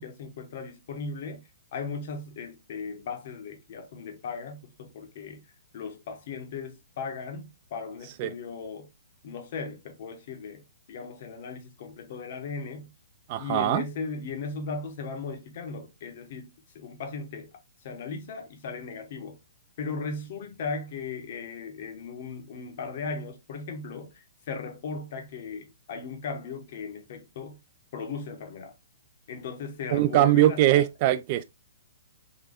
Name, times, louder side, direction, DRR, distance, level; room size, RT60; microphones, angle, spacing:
voice 1, 0.0-1.4 1.7-5.5 5.7-8.9 9.2-10.6 10.9-12.9 13.4-17.5 17.8-19.4 19.8-27.6 27.9-28.7 29.3-30.7, left 4 dB, 40° left, 0.7 m, -37 dB
voice 2, 13.3-13.8 29.9-31.4, right 13 dB, 30° right, 0.3 m, -22 dB
3.7 x 2.2 x 3.5 m
hypercardioid pair, 170°, 0 cm